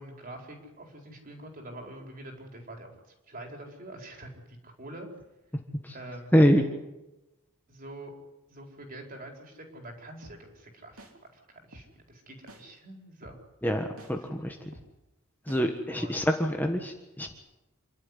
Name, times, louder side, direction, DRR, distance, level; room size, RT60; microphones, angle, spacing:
voice 1, 0.0-2.9 3.3-5.1 5.9-6.3 7.7-8.1 8.5-11.0 11.3-13.4 15.9-16.2, right 1 dB, 40° right, 2 dB, 4.6 m, -45 dB
voice 2, 6.3-6.6 13.6-14.7 15.5-17.3, equal, 10° left, 3 dB, 1.5 m, -25 dB
sound 1, 10.2-10.4 11.0-11.1 11.7-11.9 12.5-12.6 13.2-13.4 14.0-14.1 14.7-14.9 15.5-15.6, right 1 dB, 80° right, 3.2 m, -48 dB
27.5 x 12.0 x 9.9 m, 0.98 s
head